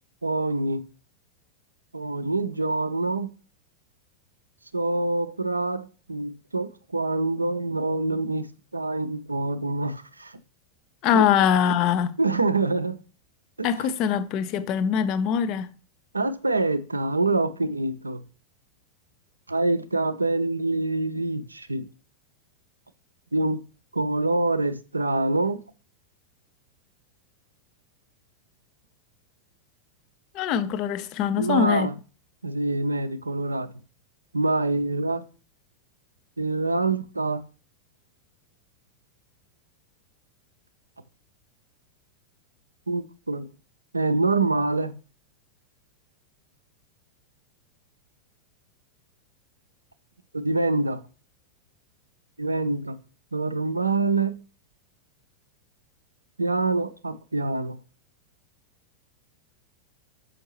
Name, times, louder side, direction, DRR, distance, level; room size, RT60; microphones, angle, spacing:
voice 1, 0.2-0.8 1.9-3.3 4.7-8.5 8.7-10.3 11.1-11.3 12.2-13.0 13.6-13.9 16.1-18.2 19.5-21.9 23.3-23.6 23.9-25.6 31.4-31.9 32.4-33.7 34.3-35.2 36.4-37.4 42.9-43.5 43.9-45.0 50.3-51.0 52.4-53.0 53.3-54.4 56.4-57.8, right 2 dB, 80° right, 0.5 m, -25 dB
voice 2, 11.0-12.2 13.6-15.7 30.3-31.9, left 8 dB, 40° left, 0.5 m, -23 dB
6.4 x 5.3 x 2.9 m
figure-of-eight pair, 90°, 0 cm